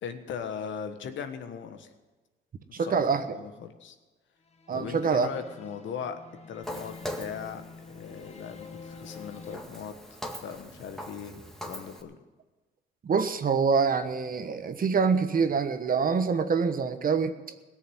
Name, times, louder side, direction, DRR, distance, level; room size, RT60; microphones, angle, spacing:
voice 1, 0.0-1.9 2.8-3.0 3.3-4.0 4.7-6.2 6.5-7.6 7.9-12.2, left 7 dB, 70° left, 8 dB, 1.4 m, -39 dB
voice 2, 2.7-3.4 4.7-5.3 13.0-17.3, right 5 dB, 45° right, 9 dB, 1.2 m, -25 dB
sound 1, 4.5-9.6, left 4 dB, 35° left, 1.4 m, -47 dB
Walk footsteps, 6.6-12.0, left 1 dB, ahead, 1.9 m, -42 dB
17.5 x 6.9 x 9.3 m, 1.2 s
cardioid pair, 90°, 20 cm